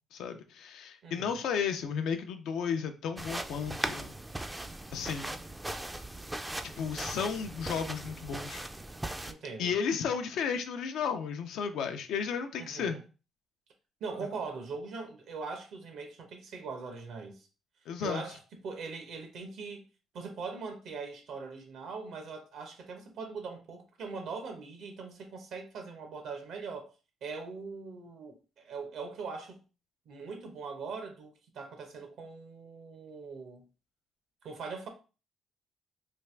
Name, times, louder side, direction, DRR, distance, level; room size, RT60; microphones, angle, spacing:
voice 1, 0.1-4.2 4.9-5.4 6.8-8.6 9.6-13.0 17.9-18.2, left 6 dB, 80° left, 0.5 m, -33 dB
voice 2, 1.0-1.4 9.3-9.8 12.6-13.0 14.0-17.5 18.0-19.8 20.1-26.9 27.2-29.6 30.1-33.6 34.4-34.9, right 4 dB, 75° right, 0.9 m, -41 dB
sound 1, 3.2-9.3, right 1 dB, 10° right, 0.3 m, -39 dB
3.3 x 2.4 x 3.2 m
cardioid pair, 90°, 0 cm